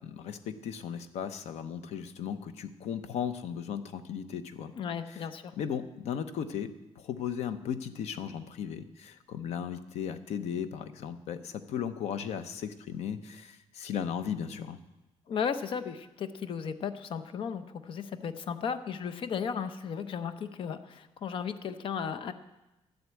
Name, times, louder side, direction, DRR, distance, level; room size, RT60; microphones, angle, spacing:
voice 1, 0.0-4.7 5.1-5.2 5.6-14.8, left 8 dB, 75° left, 11 dB, 0.9 m, -36 dB
voice 2, 4.7-5.5 15.3-22.3, left 7 dB, 50° left, 11 dB, 0.7 m, -35 dB
12.0 x 7.9 x 8.4 m, 1.0 s
cardioid pair, 165°, 11 cm